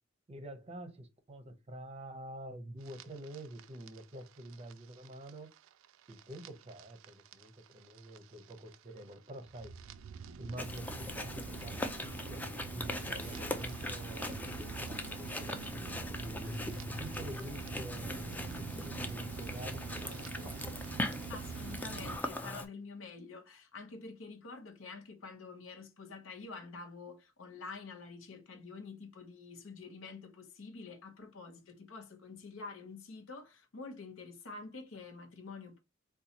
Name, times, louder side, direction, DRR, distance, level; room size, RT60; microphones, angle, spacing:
voice 1, 0.3-5.5 6.1-9.7 10.4-11.9 12.3-16.5 17.0-20.8 21.2-21.3, right 1 dB, 30° right, 0.6 m, -47 dB
sound 1, 2.8-22.2, right 5 dB, 80° right, 0.3 m, -45 dB
Chewing mastication, 10.6-22.6, left 1 dB, 10° left, 0.4 m, -40 dB
voice 2, 21.3-35.8, left 4 dB, 80° left, 0.8 m, -47 dB
4.0 x 2.3 x 2.7 m
head